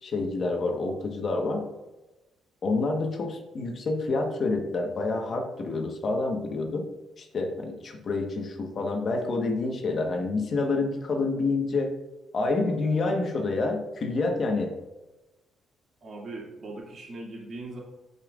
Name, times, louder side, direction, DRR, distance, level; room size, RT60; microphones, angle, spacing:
voice 1, 0.0-1.6 2.6-6.9 7.2-11.9 12.3-14.7, left 3 dB, 50° left, 3 dB, 1.3 m, -28 dB
voice 2, 16.0-17.8, right 2 dB, 50° right, -2 dB, 2.5 m, -39 dB
14.5 x 5.4 x 2.5 m, 1.1 s
cardioid pair, 90°, 0 cm